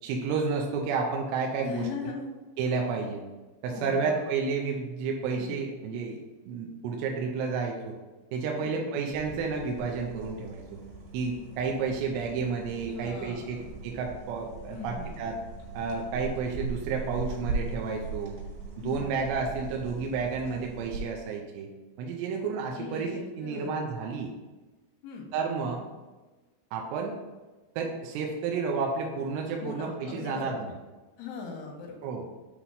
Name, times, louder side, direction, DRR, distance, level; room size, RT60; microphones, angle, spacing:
voice 1, 0.0-1.9 2.6-3.2 3.6-6.2 6.5-8.0 8.3-10.8 11.1-15.4 15.7-18.4 18.8-21.7 22.0-23.1 23.4-24.3 25.3-25.9 26.7-27.2 27.8-30.7 32.0-32.2, right 5 dB, 80° right, 0 dB, 2.7 m, -31 dB
voice 2, 1.6-2.3 3.7-4.3 5.4-5.6 8.6-9.1 12.9-13.7 14.7-15.2 18.8-19.1 22.8-23.9 25.0-25.3 29.6-30.7 31.2-32.1, left 5 dB, 85° left, 1 dB, 3.5 m, -40 dB
sound 1, 9.1-21.0, right 4 dB, 65° right, 3.9 m, -39 dB
8.2 x 3.0 x 5.5 m, 1.2 s
omnidirectional pair, 5.2 m